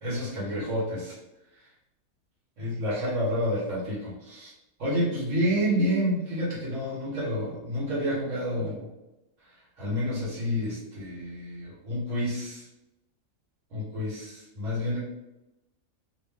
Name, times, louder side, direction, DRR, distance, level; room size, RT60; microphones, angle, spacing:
voice 1, 0.0-1.2 2.6-4.5 4.8-8.9 9.8-12.7 13.7-15.0, equal, 60° right, -7 dB, 1.7 m, -29 dB
3.2 x 2.5 x 3.5 m, 0.95 s
omnidirectional pair, 1.5 m